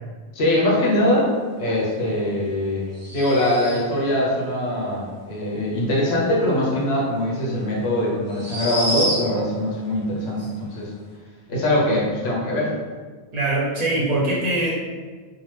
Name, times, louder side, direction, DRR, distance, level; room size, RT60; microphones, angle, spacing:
voice 1, 0.3-1.3 1.6-2.8 3.1-10.9 11.5-12.7, left 1 dB, 75° left, -4 dB, 1.0 m, -22 dB
sound 1, 2.9-4.0 7.1-7.2 8.3-9.5, right 1 dB, 10° right, 0.8 m, -28 dB
voice 2, 13.3-14.7, right 2 dB, 50° right, -5 dB, 0.6 m, -22 dB
2.8 x 2.0 x 3.2 m, 1.5 s
omnidirectional pair, 1.1 m